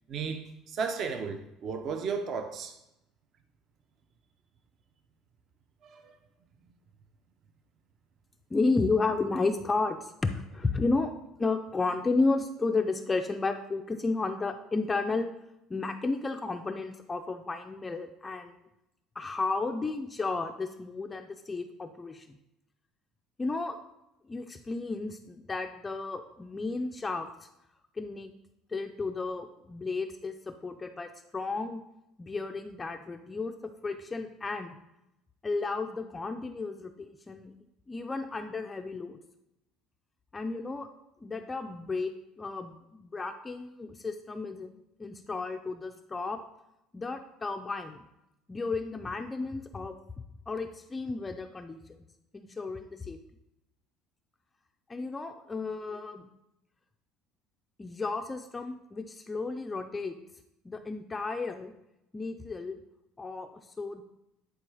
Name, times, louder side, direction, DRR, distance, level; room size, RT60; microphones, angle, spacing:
voice 1, 0.1-2.7 5.9-6.0, right 5 dB, 40° right, 7 dB, 0.6 m, -34 dB
voice 2, 8.5-15.3 15.7-18.6 19.2-22.4 23.4-23.8 24.2-27.5 28.0-28.3 28.7-31.8 32.2-34.8 35.4-37.5 37.9-39.2 40.3-40.9 41.2-44.7 45.0-46.4 46.9-48.0 48.5-49.9 50.5-51.8 52.3-53.2 54.9-56.2 57.8-60.2 60.6-61.7 62.1-62.8 63.2-64.0, left 3 dB, 15° left, 5 dB, 0.4 m, -33 dB
10.5 x 4.5 x 4.8 m, 0.86 s
cardioid pair, 170°, 0 cm